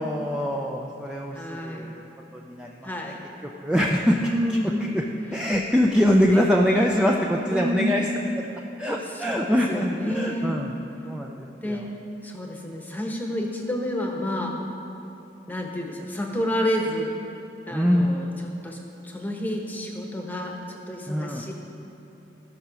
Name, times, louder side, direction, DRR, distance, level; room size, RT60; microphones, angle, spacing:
voice 1, 0.0-2.1 2.3-2.9 3.6-4.2 4.5-4.6 4.9-5.0 5.3-8.0 8.8-10.7 11.1-11.8 17.7-18.2 21.1-21.5, equal, 5° right, -1 dB, 0.5 m, -23 dB
voice 2, 1.3-1.9 2.8-3.2 4.1-4.9 6.3-6.4 7.5-8.0 9.1-10.6 11.6-11.9 12.2-14.5 15.5-17.1 17.7-18.3 18.6-18.8 19.0-21.5, equal, 10° left, 1 dB, 1.1 m, -29 dB
15.0 x 5.9 x 6.2 m, 2.9 s
head